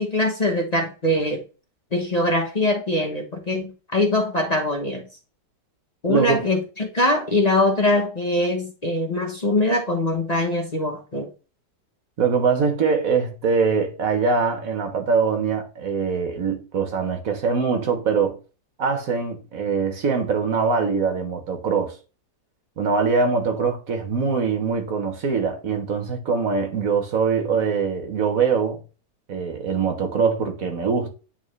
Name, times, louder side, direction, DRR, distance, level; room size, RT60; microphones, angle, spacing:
voice 1, 0.0-1.4 1.9-5.0 6.0-11.3, left 1 dB, 30° left, 0.9 m, -22 dB
voice 2, 6.1-6.4 12.2-18.4 18.8-22.0 22.8-28.8 29.3-31.1, right 5 dB, 55° right, 1.4 m, -23 dB
9.2 x 3.6 x 3.2 m
omnidirectional pair, 1.9 m